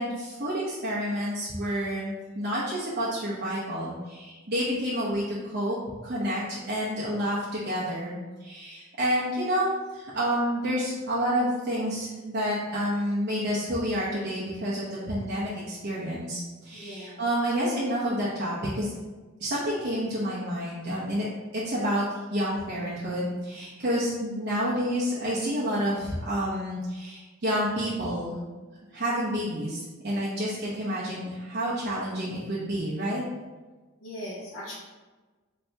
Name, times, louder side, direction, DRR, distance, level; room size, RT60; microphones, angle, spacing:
voice 1, 0.0-5.8 6.0-18.9 19.4-21.3 21.5-22.0 22.3-28.3 28.9-33.2, equal, 50° right, -8 dB, 0.7 m, -29 dB
voice 2, 16.7-17.2 30.7-30.8 34.0-34.7, left 1 dB, 70° left, -5 dB, 0.9 m, -39 dB
4.2 x 2.7 x 3.3 m, 1.3 s
head